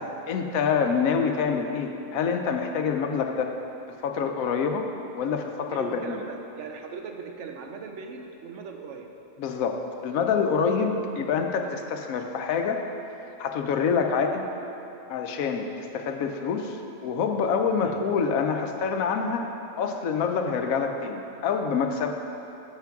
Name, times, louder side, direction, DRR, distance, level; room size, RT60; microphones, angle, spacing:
voice 1, 0.0-3.6 3.9-4.9 5.1-6.2 9.4-12.8 13.4-14.4 15.1-16.8 17.0-22.1, left 6 dB, 90° left, 5 dB, 1.1 m, -26 dB
voice 2, 5.7-9.1 10.8-10.9 11.6-11.9 17.8-18.0, right 5 dB, 65° right, 4 dB, 0.9 m, -40 dB
7.7 x 5.8 x 5.8 m, 3.0 s
omnidirectional pair, 1.4 m